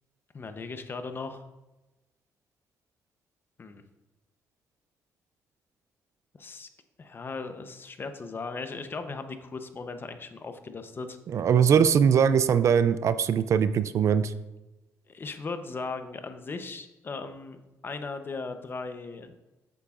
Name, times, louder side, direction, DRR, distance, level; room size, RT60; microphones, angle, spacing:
voice 1, 0.3-1.4 3.6-3.8 6.4-6.7 7.0-11.4 12.3-12.4 15.1-19.4, left 4 dB, 40° left, 8 dB, 0.8 m, -38 dB
voice 2, 11.3-14.3, right 7 dB, 60° right, 14 dB, 0.4 m, -21 dB
8.4 x 7.9 x 2.5 m, 1.0 s
cardioid pair, 75°, 6 cm